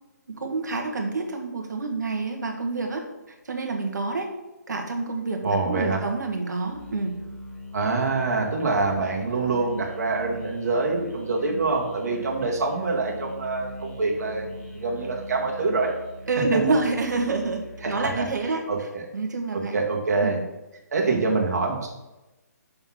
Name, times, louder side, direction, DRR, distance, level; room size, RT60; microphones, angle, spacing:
voice 1, 0.3-3.0 3.5-4.3 4.7-7.1 16.3-19.8 20.2-20.4, right 3 dB, 85° right, 3 dB, 1.7 m, -28 dB
voice 2, 5.4-6.0 7.7-15.9 17.8-18.3 18.7-19.0 19.5-20.4 20.9-21.9, right 3 dB, 65° right, -1 dB, 1.8 m, -25 dB
Musical instrument, 6.7-18.4, left 1 dB, 10° left, 1.3 m, -41 dB
6.8 x 4.1 x 6.0 m, 1.0 s
hypercardioid pair, 155°, 9 cm